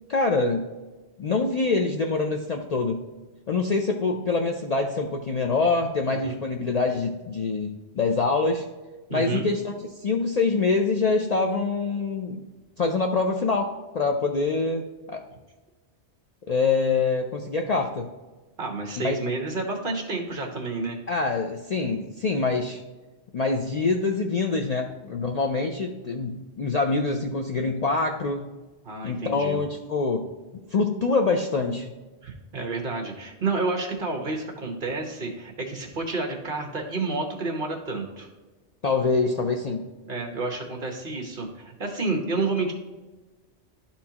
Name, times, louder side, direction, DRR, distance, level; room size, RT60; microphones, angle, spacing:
voice 1, 0.1-0.7 1.2-3.1 3.5-8.6 9.1-9.8 10.0-12.4 12.8-15.2 16.5-18.1 19.0-19.2 21.1-22.8 23.3-28.5 29.0-30.3 30.7-32.0 38.8-39.9, left 3 dB, 50° left, 2 dB, 0.5 m, -25 dB
voice 2, 9.1-9.5 18.6-21.0 28.8-29.6 32.2-38.3 40.1-42.7, right 3 dB, 50° right, 2 dB, 1.3 m, -30 dB
11.5 x 4.4 x 2.9 m, 1.2 s
omnidirectional pair, 1.2 m